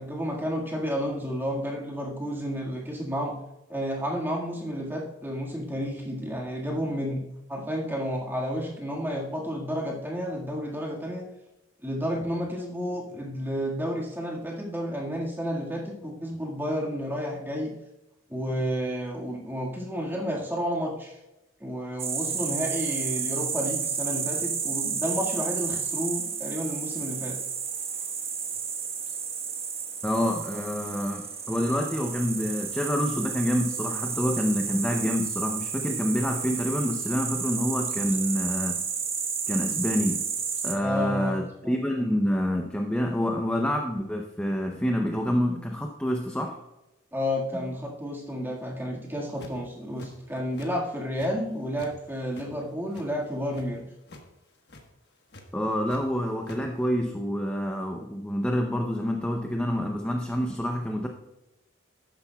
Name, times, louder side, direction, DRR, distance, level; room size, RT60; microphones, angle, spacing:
voice 1, 0.0-3.3 3.7-7.2 7.5-11.3 11.8-17.7 18.3-21.2 21.6-27.4 40.8-41.4 41.6-41.8 47.1-53.8, equal, 10° right, -2 dB, 1.7 m, -31 dB
sound 1, 22.0-40.8, right 6 dB, 30° right, 1.1 m, -31 dB
voice 2, 30.0-38.9 39.5-40.3 40.6-46.6 47.6-47.7 55.5-61.1, equal, 5° left, 2 dB, 0.6 m, -27 dB
sound 2, 49.1-49.6 50.0-50.7 51.0-52.0 52.2-53.7 54.0-54.2 54.5-54.8 55.3-56.0 56.3-56.6, left 2 dB, 55° left, 1.3 m, -47 dB
12.5 x 10.0 x 2.3 m, 0.97 s
head